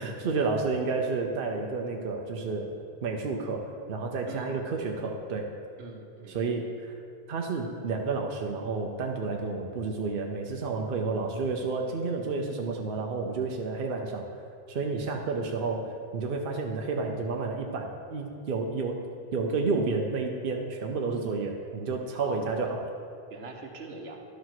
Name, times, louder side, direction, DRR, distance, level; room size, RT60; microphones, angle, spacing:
voice 1, 0.0-2.8 3.0-5.4 6.3-6.9 7.3-14.3 14.7-19.0 19.3-22.9, right 4 dB, 60° right, 1 dB, 0.9 m, -30 dB
voice 2, 4.3-4.6 5.8-6.4 22.2-22.6 23.3-24.2, right 3 dB, 75° right, 3 dB, 1.2 m, -43 dB
11.5 x 5.0 x 6.0 m, 2.4 s
omnidirectional pair, 1.1 m